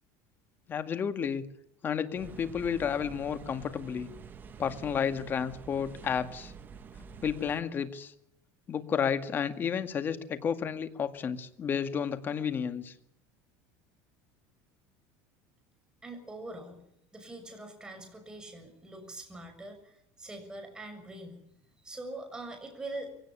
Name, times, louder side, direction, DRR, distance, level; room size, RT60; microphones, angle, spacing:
voice 1, 0.7-1.4 1.8-4.1 4.6-6.5 7.2-8.1 8.7-12.9, left 7 dB, 30° left, 10 dB, 2.0 m, -31 dB
sound 1, 2.2-7.6, right 5 dB, 25° right, 1.5 m, -48 dB
voice 2, 16.0-16.8 17.1-21.4 21.8-23.1, right 2 dB, 10° right, 5 dB, 6.7 m, -43 dB
24.0 x 17.5 x 9.8 m, 0.77 s
supercardioid pair, 145°, 7 cm